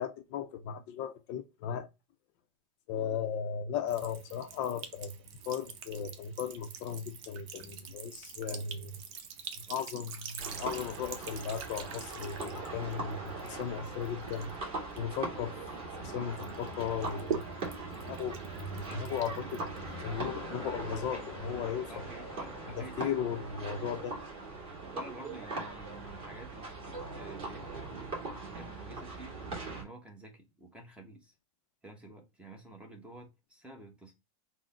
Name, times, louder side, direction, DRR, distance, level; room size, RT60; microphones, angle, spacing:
voice 1, 0.0-1.9 2.9-5.1 5.5-9.0 9.7-14.5 15.0-15.6 16.0-17.4 18.0-22.0 22.7-24.2, left 7 dB, 45° left, 0.5 m, -36 dB
Sink (filling or washing) / Trickle dribble, 3.9-16.0 16.4-20.2, right 7 dB, 50° right, 0.7 m, -45 dB
sound 1, 10.4-29.8, right 3 dB, 25° right, 1.9 m, -41 dB
sound 2, 18.6-23.6, left 7 dB, 85° left, 0.8 m, -51 dB
voice 2, 21.9-23.1 24.8-28.0 28.4-29.4 29.7-31.3 31.8-34.1, right 1 dB, 5° right, 0.8 m, -50 dB
3.7 x 2.0 x 3.9 m
supercardioid pair, 140°, 18 cm